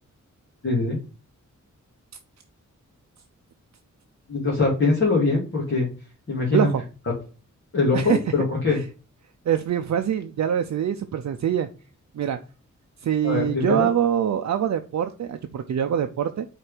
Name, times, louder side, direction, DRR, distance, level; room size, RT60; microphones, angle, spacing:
voice 1, 0.6-1.0 4.3-5.9 6.3-6.7 7.7-8.8 13.2-13.9, left 3 dB, 40° left, -5 dB, 2.2 m, -22 dB
voice 2, 9.4-11.7 12.1-12.4 13.0-16.5, right 9 dB, 65° right, 7 dB, 0.5 m, -24 dB
4.6 x 4.2 x 4.9 m, 0.36 s
wide cardioid pair, 170°, 31 cm